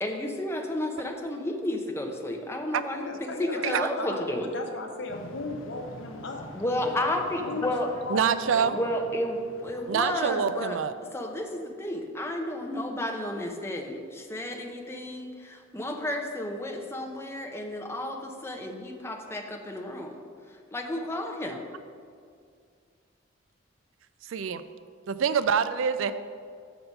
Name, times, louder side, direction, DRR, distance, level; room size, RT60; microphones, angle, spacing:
voice 1, 0.0-4.5 6.5-7.9 8.7-10.8 11.1-20.2 20.7-21.6, left 1 dB, 15° left, 2 dB, 0.7 m, -32 dB
voice 2, 2.9-6.5 7.5-9.0, left 2 dB, 65° left, 3 dB, 0.9 m, -36 dB
sound 1, 5.1-10.2, left 2 dB, 85° left, 0.6 m, -47 dB
voice 3, 8.1-8.8 9.9-10.9 24.3-24.6 25.1-26.1, right 7 dB, 75° right, 12 dB, 0.4 m, -26 dB
6.7 x 6.1 x 5.4 m, 2.2 s
head